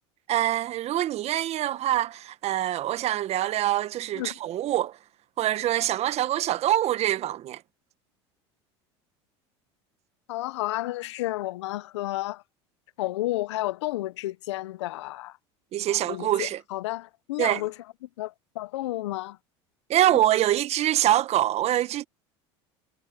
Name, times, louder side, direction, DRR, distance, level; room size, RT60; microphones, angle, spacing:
voice 1, 0.3-4.9 5.4-7.6 15.7-16.6 17.4-17.6 19.9-22.0, right 13 dB, 45° right, 1.5 m, -25 dB
voice 2, 10.3-12.4 13.0-15.4 15.9-17.7 18.2-19.4, left 17 dB, 80° left, 1.0 m, -31 dB
hypercardioid pair, 85°, 14 cm